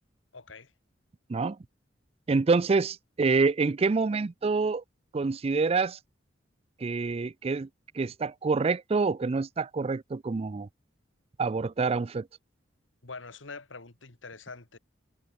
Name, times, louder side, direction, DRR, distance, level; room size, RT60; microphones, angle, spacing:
voice 1, 0.3-0.7 13.0-14.8, left 4 dB, 90° left, 2.3 m, -44 dB
voice 2, 2.3-4.8 5.1-6.0 6.8-7.7 8.0-10.7 11.4-12.3, right 4 dB, 30° right, 0.4 m, -27 dB
head